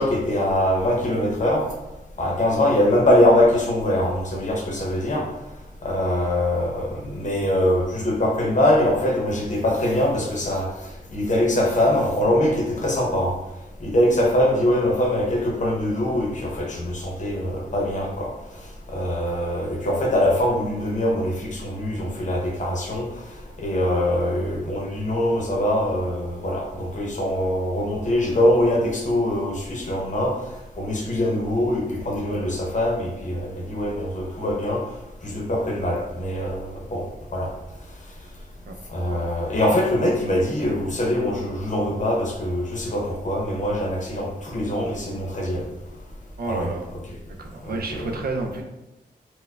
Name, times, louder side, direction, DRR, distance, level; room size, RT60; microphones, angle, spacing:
voice 1, 0.0-1.6 2.2-5.2 5.8-10.7 11.1-13.3 13.8-18.3 18.9-23.1 23.6-30.3 30.8-34.8 35.2-37.0 37.3-37.5 38.9-45.6 46.4-46.7 47.1-47.2 47.7-48.1, left 1 dB, 45° left, -1 dB, 0.7 m, -23 dB
voice 2, 39.1-39.6 46.4-46.9 47.4-48.6, right 3 dB, 65° right, 2 dB, 0.5 m, -31 dB
4.3 x 2.1 x 2.3 m, 0.99 s
wide cardioid pair, 100°, 17 cm